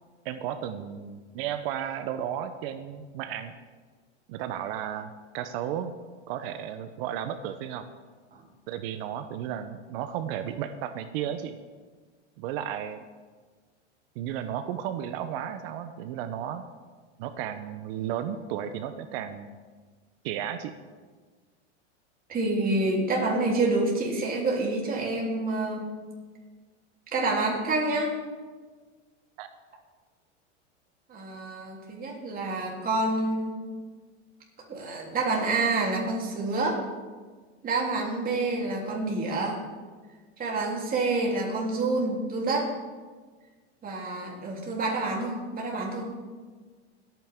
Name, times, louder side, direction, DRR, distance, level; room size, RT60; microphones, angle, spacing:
voice 1, 0.2-3.5 4.3-5.9 6.3-7.9 8.7-11.6 12.4-13.1 14.2-16.7 17.2-19.5 20.2-20.7 29.4-29.5, right 10 dB, 55° right, 10 dB, 0.9 m, -34 dB
voice 2, 22.3-25.9 27.1-28.2 31.1-33.6 34.7-36.8 37.6-39.6 40.4-42.7 43.8-46.1, right 2 dB, 25° right, -2 dB, 3.3 m, -28 dB
21.0 x 9.2 x 3.7 m, 1.4 s
supercardioid pair, 125°, 35 cm